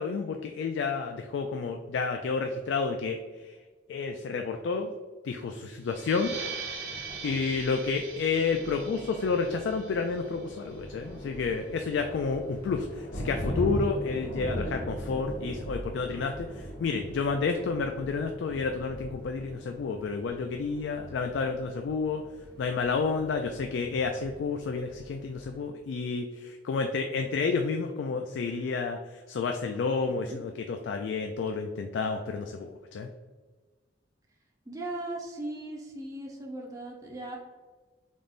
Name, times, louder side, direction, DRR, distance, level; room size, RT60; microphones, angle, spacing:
voice 1, 0.0-3.6 3.9-4.9 5.2-6.3 6.8-6.9 7.2-22.2 22.6-33.1, left 4 dB, 80° left, 5 dB, 0.3 m, -30 dB
sound 1, 5.8-11.1, right 5 dB, 60° right, 0.8 m, -42 dB
Thunder, 6.0-25.7, equal, 65° left, 1.5 m, -40 dB
voice 2, 30.0-30.4 34.7-37.4, right 1 dB, 20° right, -2 dB, 0.5 m, -38 dB
3.8 x 3.6 x 2.5 m, 1.4 s
head